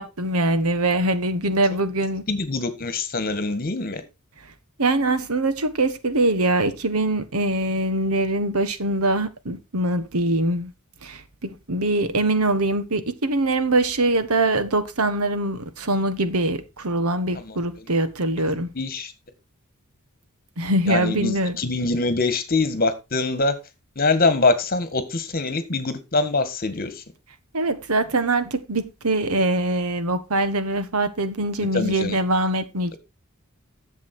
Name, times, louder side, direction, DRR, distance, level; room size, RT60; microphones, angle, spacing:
voice 1, 0.0-2.2 4.8-10.7 11.0-18.7 20.6-21.6 27.5-33.0, right 2 dB, 90° right, 1.4 m, -23 dB
voice 2, 2.3-4.0 17.4-17.6 18.8-19.1 20.9-23.6 24.0-27.0 31.7-32.2 32.9-33.0, left 3 dB, 45° left, 1.7 m, -24 dB
11.0 x 7.5 x 4.4 m
head